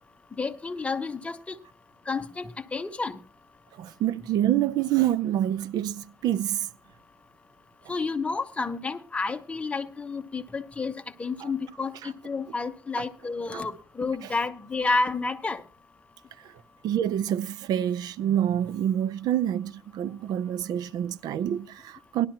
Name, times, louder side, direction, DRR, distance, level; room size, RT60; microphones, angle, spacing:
voice 1, 0.4-1.5 2.1-3.2 7.9-10.9 11.2-15.6, left 4 dB, 15° left, 0.9 m, -30 dB
voice 2, 3.8-6.7 11.4-11.5 13.5-13.6 16.4-16.5 16.8-22.3, right 11 dB, 70° right, 0.5 m, -27 dB
18.0 x 11.5 x 2.9 m
cardioid pair, 135°, 7 cm